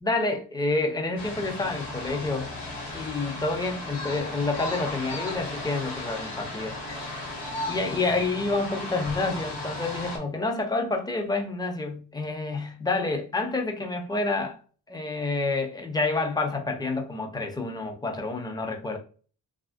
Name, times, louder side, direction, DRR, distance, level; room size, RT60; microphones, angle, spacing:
voice 1, 0.0-2.5 2.9-6.7 7.7-14.6 14.9-19.0, left 3 dB, 10° left, 0.4 m, -28 dB
sound 1, 1.2-10.2, left 2 dB, 70° left, 1.1 m, -35 dB
2.9 x 2.4 x 2.4 m
wide cardioid pair, 115°, 43 cm